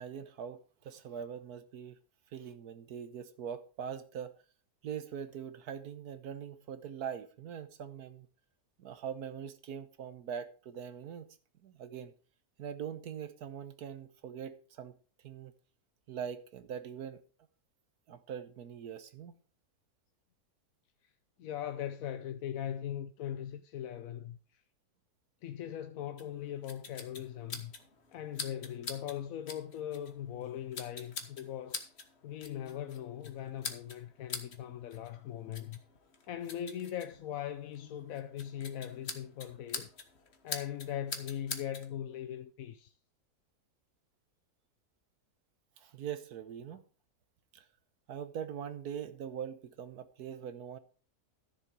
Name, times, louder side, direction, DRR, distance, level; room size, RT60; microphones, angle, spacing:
voice 1, 0.0-2.0 2.3-4.3 4.8-8.3 8.8-11.3 11.6-12.1 12.6-15.0 15.2-15.5 16.1-17.2 18.1-19.3 45.8-46.8 47.5-47.6 48.1-50.8, right 8 dB, 80° right, 1.5 m, -42 dB
voice 2, 21.4-24.6 25.4-27.7 28.1-31.9 32.2-35.8 36.3-39.9 40.4-42.9, left 10 dB, 70° left, 1.0 m, -40 dB
sound 1, 26.2-41.9, left 4 dB, 45° left, 1.5 m, -46 dB
13.5 x 7.1 x 4.7 m
omnidirectional pair, 1.6 m